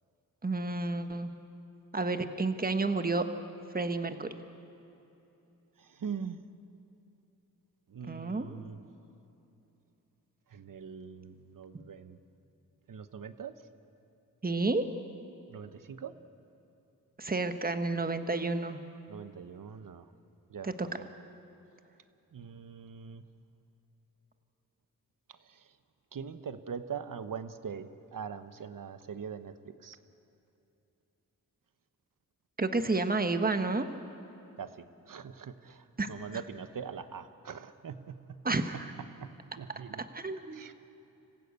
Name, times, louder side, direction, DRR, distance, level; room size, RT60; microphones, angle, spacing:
voice 1, 0.4-1.3 1.9-3.2 3.7-4.3 8.0-8.5 14.4-14.9 17.2-18.8 20.6-20.7 32.6-33.9 36.0-36.1 38.4-38.9 40.0-40.7, right 3 dB, 25° right, 8 dB, 1.3 m, -30 dB
voice 2, 5.8-6.4 7.9-8.8 10.5-12.2 12.9-13.7 15.5-16.1 19.1-20.1 20.5-20.7 21.0-21.1 22.3-23.2 25.3-25.7 26.1-30.0 34.6-38.5 39.2-40.1 40.5-40.7, right 6 dB, 65° right, 11 dB, 1.1 m, -42 dB
26.0 x 15.5 x 8.2 m, 2.9 s
cardioid pair, 75°, 35 cm